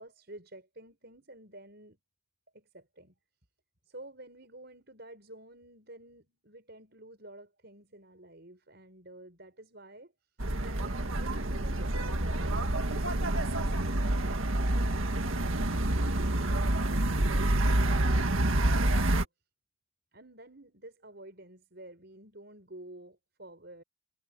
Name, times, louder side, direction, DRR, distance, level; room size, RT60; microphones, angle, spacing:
voice 1, 0.0-2.0 2.5-3.1 3.8-10.3 10.6-17.3 20.1-23.8, right 1 dB, 55° right, 6.4 m, -51 dB
sound 1, 10.4-19.2, right 1 dB, 85° right, 1.9 m, -28 dB
head